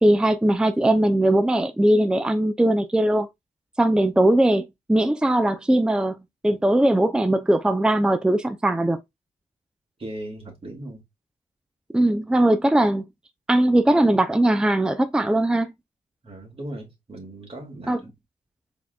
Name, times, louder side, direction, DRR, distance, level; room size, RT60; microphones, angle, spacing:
voice 1, 0.0-3.3 3.8-9.0 11.9-13.0 13.5-15.7 17.9-18.0, right 1 dB, 5° right, 0.5 m, -20 dB
voice 2, 10.0-11.0 16.2-18.1, right 1 dB, 40° right, 2.3 m, -38 dB
4.6 x 3.6 x 2.3 m
cardioid pair, 60°, 15 cm